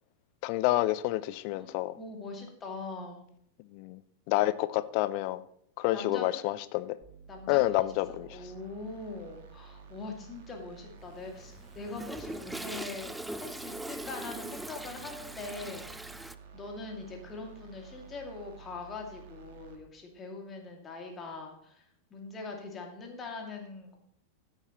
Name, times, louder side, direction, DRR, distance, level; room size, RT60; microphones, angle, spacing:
voice 1, 0.4-2.0 3.7-4.0 4.3-5.4 5.8-7.0 7.5-8.4, left 17 dB, 45° left, 16 dB, 0.6 m, -28 dB
voice 2, 2.0-3.3 5.9-6.4 7.3-7.9 8.3-16.2 16.5-21.9 22.1-24.0, left 3 dB, 25° left, 2 dB, 2.4 m, -42 dB
sound 1, 7.0-19.8, right 6 dB, 50° right, 1.9 m, -52 dB
Toilet flush, 11.1-16.3, right 1 dB, 5° right, 0.5 m, -41 dB
15.5 x 9.2 x 3.1 m, 0.69 s
figure-of-eight pair, 90°, 0 cm